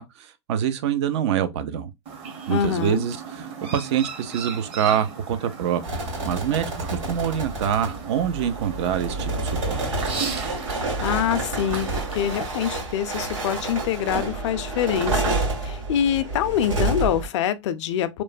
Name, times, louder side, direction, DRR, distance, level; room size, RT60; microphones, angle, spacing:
voice 1, 0.0-1.9 2.5-3.5 3.7-9.3 9.7-9.8, right 9 dB, 60° right, 0.5 m, -25 dB
Chirp tweet, 2.1-12.5, right 5 dB, 35° right, 1.0 m, -36 dB
voice 2, 2.5-3.1 11.0-18.2, left 9 dB, 65° left, 0.4 m, -25 dB
sound 1, 5.8-17.3, right 2 dB, 85° right, 1.7 m, -29 dB
3.0 x 2.1 x 2.4 m
hypercardioid pair, 115°, 16 cm